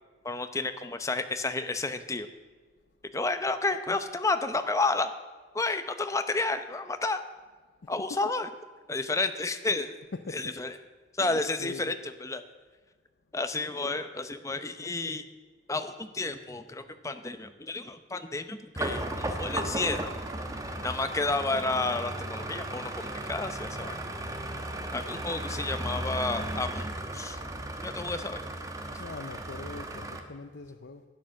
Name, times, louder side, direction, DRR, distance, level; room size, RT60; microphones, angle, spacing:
voice 1, 0.2-2.3 3.1-5.1 5.5-7.2 7.9-8.5 8.9-9.9 10.3-10.7 11.2-11.9 12.2-12.4 13.3-15.2 15.7-20.1 20.8-24.0 24.9-26.9 27.1-27.4 27.8-28.5, left 3 dB, 15° left, 9 dB, 0.7 m, -31 dB
voice 2, 7.8-8.3 10.1-10.5 11.2-12.0 29.0-31.0, left 3 dB, 70° left, 7 dB, 0.6 m, -42 dB
sound 1, 18.8-30.2, right 1 dB, 20° right, 1.0 m, -35 dB
12.0 x 9.6 x 6.4 m, 1.4 s
head